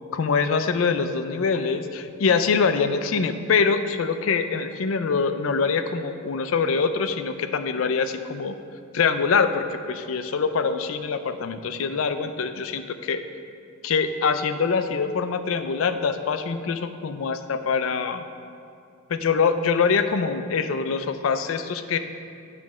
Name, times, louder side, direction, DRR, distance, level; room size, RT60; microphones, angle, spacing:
voice 1, 0.1-8.6 8.9-13.2 13.8-18.2 19.1-22.0, left 5 dB, 85° left, 9 dB, 0.4 m, -24 dB
9.3 x 3.2 x 6.1 m, 2.4 s
head